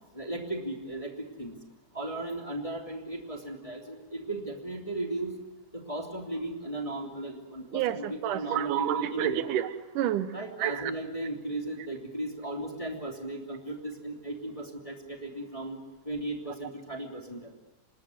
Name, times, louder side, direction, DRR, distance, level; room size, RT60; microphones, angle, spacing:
voice 1, 0.1-1.1 1.4-1.6 1.9-5.3 5.7-9.4 10.3-15.8 16.1-17.5, right 1 dB, 10° left, 1 dB, 2.4 m, -36 dB
voice 2, 7.7-10.3 10.6-10.9, right 11 dB, 80° right, 13 dB, 2.4 m, -29 dB
25.5 x 20.5 x 7.9 m, 1.1 s
omnidirectional pair, 3.6 m